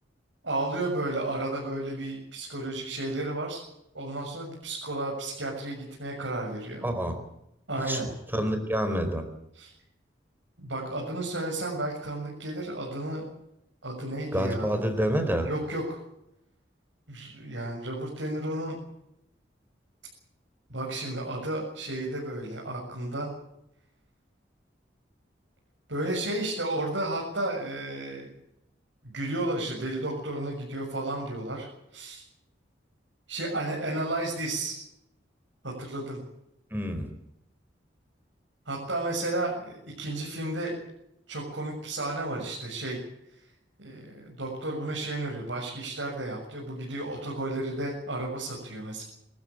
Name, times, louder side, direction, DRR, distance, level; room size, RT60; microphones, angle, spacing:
voice 1, 0.4-3.6 3.9-6.8 7.7-8.1 9.5-9.7 10.6-13.3 13.8-14.9 15.4-16.0 17.1-18.8 20.7-23.3 25.9-28.3 29.0-32.2 33.3-34.8 35.6-36.2 38.7-40.7 41.3-43.0 43.8-49.0, right 2 dB, 85° right, -2 dB, 7.2 m, -32 dB
voice 2, 6.8-7.2 7.8-8.0 8.3-9.3 14.3-15.5 36.7-37.1, equal, 10° right, 7 dB, 4.5 m, -27 dB
25.0 x 15.5 x 9.2 m, 0.80 s
head